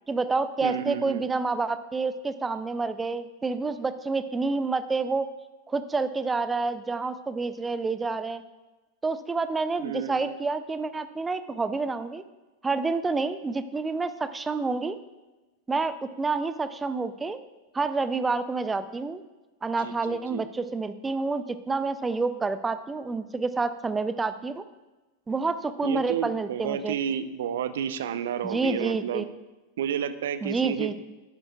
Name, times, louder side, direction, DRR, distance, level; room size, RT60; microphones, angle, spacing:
voice 1, 0.1-5.3 5.7-8.4 9.0-12.2 12.6-15.0 15.7-17.4 17.7-19.2 19.6-24.6 25.3-26.9 28.4-29.2 30.4-31.0, right 3 dB, 15° right, 12 dB, 0.5 m, -28 dB
voice 2, 0.6-1.3 9.8-10.4 19.8-20.4 25.8-29.3 29.8-30.9, right 9 dB, 60° right, 13 dB, 0.5 m, -31 dB
10.5 x 10.5 x 2.4 m, 1.2 s
figure-of-eight pair, 90°, 0 cm